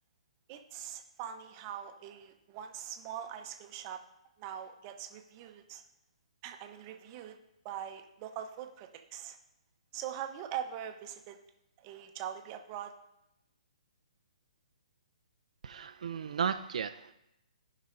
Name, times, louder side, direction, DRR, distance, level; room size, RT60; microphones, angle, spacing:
voice 1, 0.5-4.0 4.4-5.8 6.4-7.4 7.6-9.4 9.9-11.4 11.8-12.9, right 10 dB, 30° right, 5 dB, 0.8 m, -42 dB
voice 2, 15.6-17.1, right 7 dB, 70° right, 8 dB, 0.4 m, -34 dB
16.0 x 5.5 x 2.6 m, 0.85 s
hypercardioid pair, 150°, 4 cm